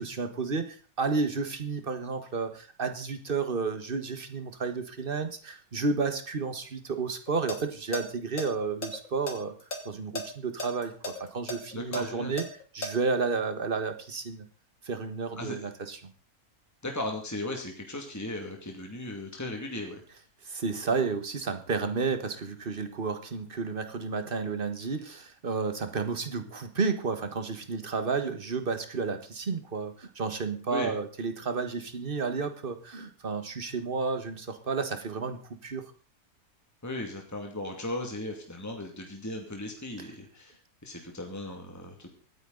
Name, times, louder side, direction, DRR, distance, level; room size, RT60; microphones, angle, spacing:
voice 1, 0.0-9.5 9.8-12.4 12.7-14.4 14.8-16.0 20.4-35.9, right 4 dB, 40° right, 8 dB, 1.7 m, -31 dB
sound 1, 7.3-7.6 7.9-8.0 8.4-9.8 10.1-10.2 10.6-12.9, left 2 dB, 65° left, 3.1 m, -34 dB
voice 2, 11.7-12.3 15.4-15.7 16.8-20.0 30.7-30.9 36.8-42.1, left 1 dB, 10° left, 2 dB, 2.3 m, -37 dB
25.0 x 9.7 x 4.0 m, 0.37 s
omnidirectional pair, 1.5 m